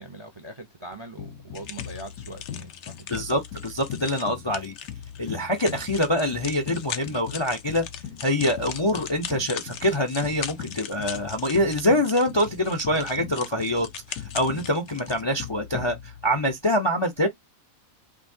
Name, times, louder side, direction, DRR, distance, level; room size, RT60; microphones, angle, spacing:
voice 1, 0.0-3.2, right 1 dB, 30° right, 0.6 m, -42 dB
sound 1, 1.2-16.6, left 9 dB, 80° left, 1.2 m, -40 dB
sound 2, 1.5-15.2, left 9 dB, 60° left, 0.8 m, -40 dB
voice 2, 3.1-4.7 5.2-7.9 8.2-17.3, left 1 dB, 30° left, 0.5 m, -25 dB
4.8 x 2.8 x 2.6 m
omnidirectional pair, 1.6 m